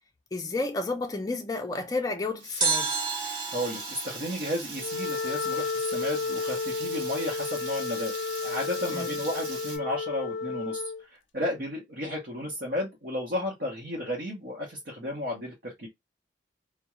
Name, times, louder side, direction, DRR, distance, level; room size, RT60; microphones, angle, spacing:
voice 1, 0.3-2.9 8.9-9.2, left 2 dB, 20° left, 0.5 m, -31 dB
Water tap faucet / Liquid, 2.4-9.8, right 3 dB, 90° right, 1.0 m, -40 dB
sound 1, 2.6-5.7 5.9-6.0, right 4 dB, 25° right, 0.6 m, -32 dB
voice 2, 3.2-8.1 8.4-15.9, left 1 dB, 60° right, 0.8 m, -33 dB
Wind instrument woodwind instrument, 4.7-11.0, left 4 dB, 75° left, 0.5 m, -32 dB
2.4 x 2.1 x 2.9 m
head